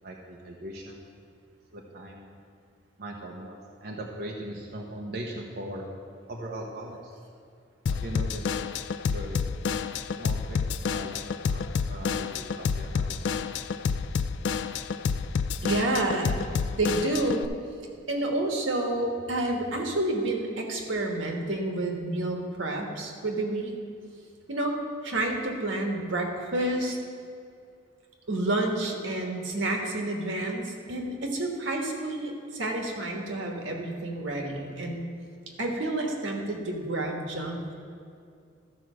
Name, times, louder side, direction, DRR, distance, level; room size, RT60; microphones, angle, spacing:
voice 1, 0.0-1.0 1.7-2.4 3.0-5.9 6.3-7.2 7.9-8.5 9.1-9.4 10.2-13.4, right 1 dB, 55° right, -1 dB, 0.8 m, -40 dB
Drum kit / Drum, 7.9-17.5, left 5 dB, 65° left, 0.3 m, -29 dB
voice 2, 15.6-16.3 16.8-17.5 18.1-23.7 24.5-24.7 25.0-27.0 28.3-35.1 35.6-37.7, right 2 dB, 85° right, 2 dB, 1.4 m, -29 dB
13.5 x 4.6 x 6.3 m, 2.4 s
head